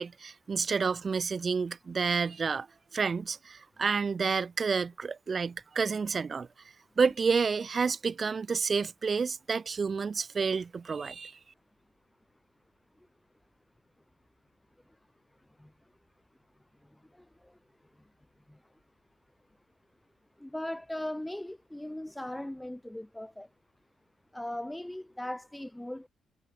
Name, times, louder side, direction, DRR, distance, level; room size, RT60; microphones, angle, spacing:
voice 1, 0.0-2.7 2.9-6.5 7.0-11.3, right 5 dB, 35° right, 1.0 m, -29 dB
voice 2, 16.9-17.6 18.5-18.6 20.4-23.5 24.3-26.1, left 1 dB, 5° left, 1.6 m, -39 dB
cardioid pair, 90°, 0 cm